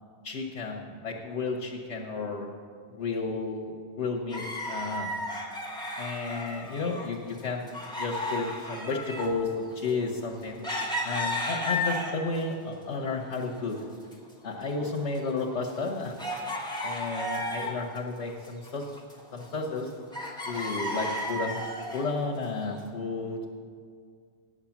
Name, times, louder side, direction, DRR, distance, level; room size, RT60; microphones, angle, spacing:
voice 1, 0.2-2.5 2.9-5.2 6.0-10.6 11.0-13.8 14.4-16.2 16.8-18.9 19.3-19.9 20.5-21.6 21.9-23.6, left 3 dB, 85° left, 0 dB, 1.3 m, -32 dB
sound 1, 4.3-7.1 7.3-12.4 12.9-13.8 14.0-14.1 14.8-18.0 18.3-19.8 20.1-22.1 22.7-22.8, left 1 dB, 5° left, 1.2 m, -34 dB
9.5 x 7.4 x 7.1 m, 2.1 s
omnidirectional pair, 1.2 m